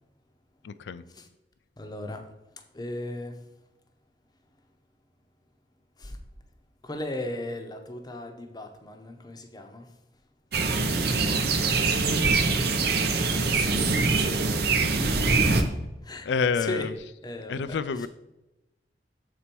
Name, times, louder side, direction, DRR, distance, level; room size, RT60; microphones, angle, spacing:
voice 1, 0.6-1.0 11.1-11.4 11.8-12.2 16.3-16.9 17.5-18.1, left 5 dB, 75° left, 0.3 m, -29 dB
voice 2, 1.8-2.3 2.7-3.4 6.0-6.2 6.8-9.9 12.2-12.4 13.3-13.8 15.3-15.5 16.0-16.9 17.2-18.1, left 1 dB, 25° left, 0.7 m, -36 dB
sound 1, 10.5-15.6, right 4 dB, 60° right, 0.8 m, -24 dB
6.9 x 4.2 x 4.4 m
head